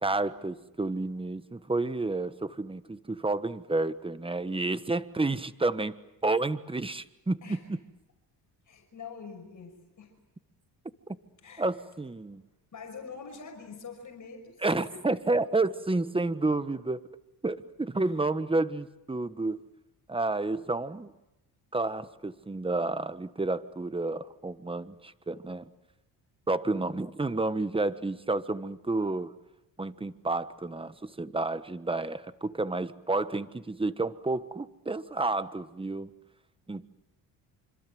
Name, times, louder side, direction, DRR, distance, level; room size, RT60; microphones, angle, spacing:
voice 1, 0.0-7.8 11.6-12.4 14.6-17.0 17.4-19.6 20.1-21.1 21.7-25.7 26.5-29.3 29.8-36.1 36.7-36.9, right 2 dB, 10° right, 13 dB, 1.3 m, -30 dB
voice 2, 8.7-10.1 11.4-11.7 12.3-12.4 12.7-15.1 17.9-18.2, left 5 dB, 45° left, 3 dB, 5.9 m, -46 dB
26.0 x 26.0 x 7.8 m, 0.93 s
cardioid pair, 80°, 43 cm